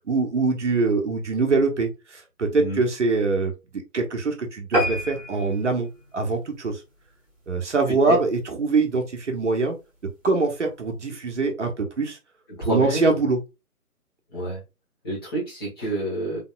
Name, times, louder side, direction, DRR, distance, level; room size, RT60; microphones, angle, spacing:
voice 1, 0.1-3.5 3.9-6.8 7.5-9.7 10.2-12.2 12.7-13.4, right 3 dB, 50° right, 3 dB, 1.1 m, -23 dB
sound 1, 4.7-7.5 8.0-8.2 8.6-8.7 9.0-9.1 9.3-9.4, equal, ahead, 1.2 m, -29 dB
voice 2, 12.5-13.1 14.3-14.6 15.0-16.4, right 1 dB, 15° left, -5 dB, 1.3 m, -28 dB
4.2 x 3.5 x 2.4 m, 0.26 s
figure-of-eight pair, 160°, 46 cm